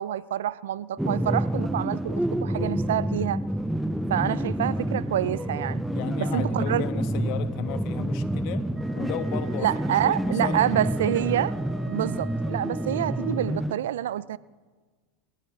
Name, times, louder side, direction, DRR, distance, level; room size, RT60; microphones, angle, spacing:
voice 1, 0.0-3.4 4.1-5.8 6.2-6.8 9.6-11.5 11.9-14.4, right 12 dB, 85° right, 0.4 m, -27 dB
sound 1, 1.0-13.7, right 1 dB, 5° right, 0.4 m, -28 dB
voice 2, 5.9-8.6 8.9-11.1, left 12 dB, 55° left, 1.2 m, -36 dB
Wind instrument woodwind instrument, 8.7-13.5, right 1 dB, 30° right, 3.2 m, -46 dB
28.0 x 14.0 x 3.3 m
supercardioid pair, 125°, 0 cm